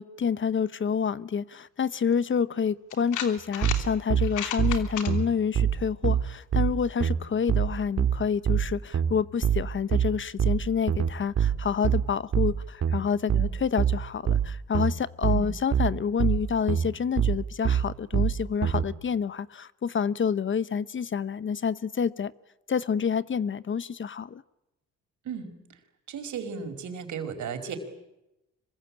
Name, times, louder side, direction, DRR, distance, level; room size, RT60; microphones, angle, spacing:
voice 1, 0.0-22.3 22.7-24.4, left 6 dB, 40° left, 1.0 m, -28 dB
sound 1, 2.1-2.2 2.9-3.8 4.2-5.1, left 9 dB, 85° left, 3.1 m, -33 dB
sound 2, 3.6-18.9, right 8 dB, 55° right, 2.3 m, -25 dB
voice 2, 25.2-25.6 26.1-27.8, right 6 dB, 70° right, 5.0 m, -35 dB
26.0 x 22.5 x 8.8 m
cardioid pair, 90°, 30 cm